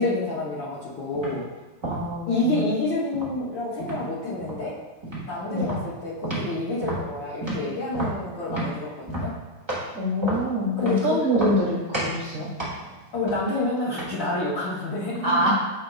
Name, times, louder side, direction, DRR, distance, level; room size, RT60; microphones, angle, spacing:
voice 1, 0.0-1.5 2.3-4.8 5.3-9.4 10.8-11.2 13.1-15.5, left 2 dB, 70° left, -7 dB, 1.1 m, -28 dB
sound 1, 1.1-1.4 1.8-2.7 3.1-4.0 4.4-4.7 5.0-5.3 5.6-6.5 6.8-9.9 10.2-11.0 11.3-11.7 11.9-12.2 12.6-14.3, right 1 dB, 20° right, 0.7 m, -31 dB
voice 2, 1.8-2.6 5.5-5.7 9.9-12.5 15.2-15.5, equal, 50° right, -5 dB, 2.0 m, -25 dB
8.4 x 5.0 x 2.3 m, 1.2 s
omnidirectional pair, 3.4 m